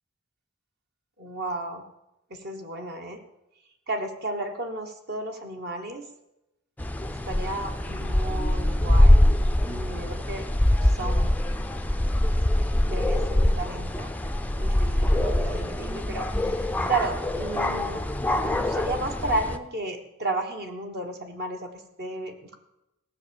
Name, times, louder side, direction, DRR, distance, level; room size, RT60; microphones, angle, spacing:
voice 1, 1.2-1.8 2.3-3.2 3.9-6.1 7.1-9.2 9.7-10.4 10.8-11.3 12.6-14.1 14.6-18.0 18.4-21.7 22.0-22.6, right 2 dB, 50° right, 4 dB, 1.4 m, -33 dB
sound 1, 6.8-19.6, left 1 dB, 5° left, 0.5 m, -23 dB
18.0 x 6.6 x 7.0 m, 0.91 s
head